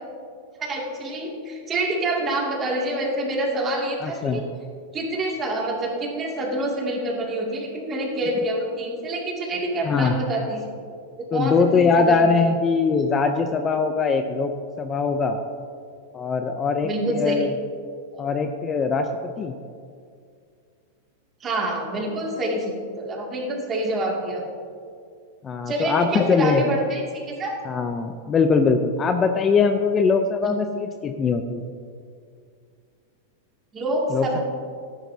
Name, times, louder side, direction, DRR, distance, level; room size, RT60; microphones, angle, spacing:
voice 1, 0.6-4.4 4.9-10.7 11.3-12.5 16.8-17.5 21.4-24.4 25.7-27.5 30.4-30.5 33.7-34.4, right 1 dB, 25° right, -2 dB, 2.4 m, -27 dB
voice 2, 4.0-4.4 9.8-10.2 11.3-14.5 14.8-15.4 16.1-17.5 18.2-19.5 25.4-26.6 27.7-31.7 34.1-34.4, left 5 dB, 25° left, 6 dB, 0.5 m, -21 dB
13.0 x 10.5 x 2.8 m, 2.2 s
hypercardioid pair, 125°, 0 cm